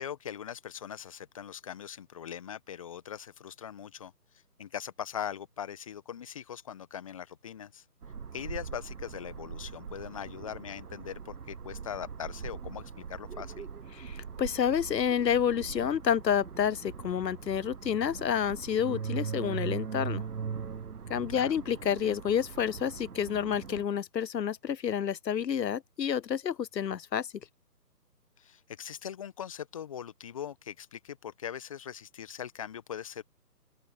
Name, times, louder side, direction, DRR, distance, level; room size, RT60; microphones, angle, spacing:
voice 1, 0.0-4.1 4.6-7.8 8.3-13.7 21.3-21.5 28.4-33.2, left 9 dB, 20° left, 1.6 m, -41 dB
sound 1, 8.0-23.9, right 6 dB, 65° right, 1.1 m, -40 dB
voice 2, 13.9-20.2 21.1-27.3, left 8 dB, 85° left, 0.6 m, -29 dB
open air
figure-of-eight pair, 150°, 49 cm